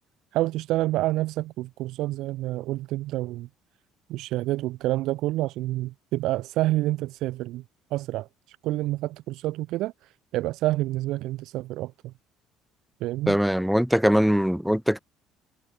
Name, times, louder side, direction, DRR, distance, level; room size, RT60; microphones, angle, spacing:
voice 1, 0.3-3.5 4.1-7.6 7.9-12.1 13.0-13.4, right 17 dB, 60° right, 5.3 m, -28 dB
voice 2, 13.3-15.0, equal, ahead, 1.7 m, -21 dB
cardioid pair, 170°, 0 cm